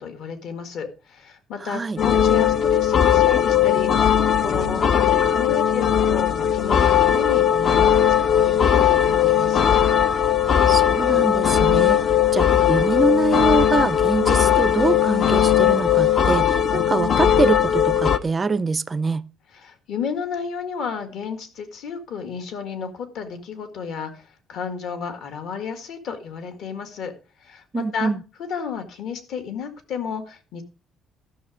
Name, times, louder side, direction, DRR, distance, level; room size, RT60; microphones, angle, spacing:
voice 1, 0.0-9.7 19.5-27.1 27.4-28.1 28.5-30.6, left 6 dB, 60° left, 1.9 m, -32 dB
voice 2, 1.6-2.0 10.7-12.0 12.3-19.2 27.7-28.2, right 4 dB, 20° right, 0.4 m, -24 dB
sound 1, 2.0-18.2, left 9 dB, 35° left, 0.5 m, -18 dB
13.0 x 6.2 x 4.9 m
cardioid pair, 175°, 0 cm